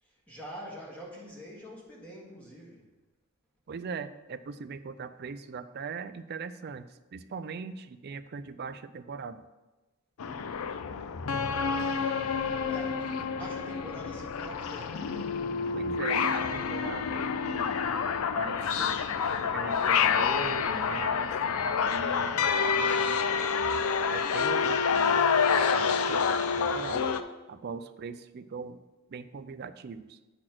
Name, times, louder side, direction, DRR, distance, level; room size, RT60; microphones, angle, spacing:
voice 1, 0.0-2.8 11.3-12.1 12.7-15.4, equal, 5° left, -5 dB, 1.8 m, -45 dB
voice 2, 3.7-6.8 7.1-9.4 15.7-17.7 18.4-19.0 19.5-23.2 24.1-25.2 25.5-27.1 27.5-28.8 29.1-30.1, right 5 dB, 45° right, 11 dB, 0.4 m, -40 dB
sound 1, 10.2-27.2, left 6 dB, 70° left, 0.4 m, -28 dB
8.8 x 4.2 x 6.0 m, 1.1 s
head